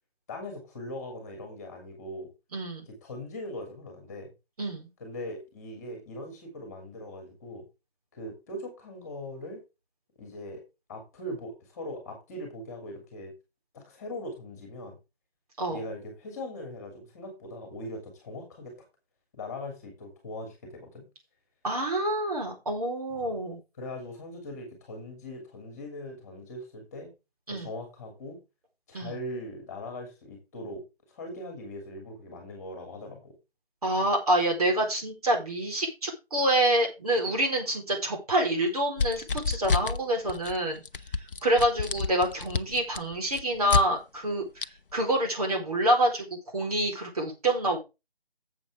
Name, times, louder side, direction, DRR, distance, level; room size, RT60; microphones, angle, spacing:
voice 1, 0.3-2.3 2.8-4.3 5.0-7.6 8.1-9.6 10.2-10.6 10.9-13.3 13.7-15.0 15.7-18.7 19.3-21.1 23.1-23.3 23.8-27.1 27.5-28.4 28.9-30.8 31.1-33.3, left 1 dB, 15° left, 3 dB, 2.8 m, -40 dB
voice 2, 2.5-2.8 4.6-4.9 15.6-15.8 21.6-23.6 27.5-27.7 28.9-29.1 33.8-40.8 41.4-44.7 44.9-46.3 46.5-47.8, right 1 dB, 35° right, 2 dB, 4.2 m, -27 dB
sound 1, 39.0-40.0 40.3-40.6 40.9-43.8 44.6-44.7, left 4 dB, 60° left, 0.8 m, -29 dB
12.0 x 7.8 x 3.7 m, 0.26 s
figure-of-eight pair, 165°, 31 cm